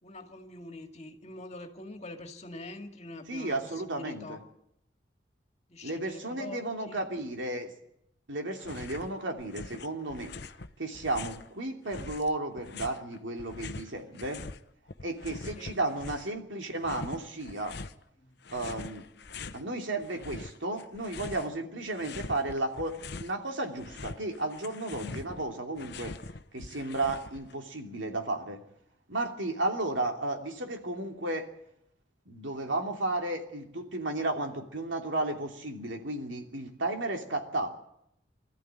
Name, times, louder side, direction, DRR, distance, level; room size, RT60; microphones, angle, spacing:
voice 1, 0.0-4.4 5.7-7.0 15.4-15.8 18.2-18.4, left 2 dB, 35° left, 5 dB, 2.2 m, -44 dB
voice 2, 3.3-4.4 5.8-7.7 8.3-10.3 10.8-14.4 15.0-17.8 18.5-19.1 19.5-26.2 26.5-28.6 29.1-31.5 32.3-37.7, right 2 dB, 85° right, 3 dB, 2.9 m, -33 dB
sound 1, 8.6-9.1 9.4-11.5 11.9-14.6 14.9-16.4 16.8-18.0 18.4-19.6 20.0-21.6 21.9-23.4 23.7-27.5, left 3 dB, 60° left, 0.9 m, -43 dB
22.5 x 14.0 x 9.0 m, 0.77 s
head